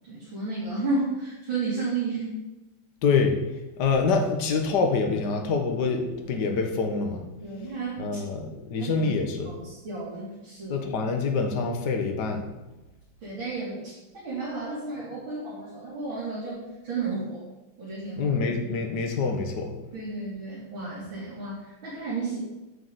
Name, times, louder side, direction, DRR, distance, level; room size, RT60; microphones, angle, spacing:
voice 1, 0.1-2.4 7.4-8.2 8.8-9.1 9.4-10.9 13.2-14.0 14.2-17.4 17.8-18.4 19.9-22.4, right 3 dB, 65° right, -8 dB, 4.3 m, -32 dB
voice 2, 3.0-3.4 3.8-7.2 8.0-9.5 10.7-12.5 18.2-19.8, left 4 dB, 55° left, 4 dB, 1.9 m, -26 dB
9.2 x 7.9 x 8.2 m, 1.0 s
omnidirectional pair, 2.4 m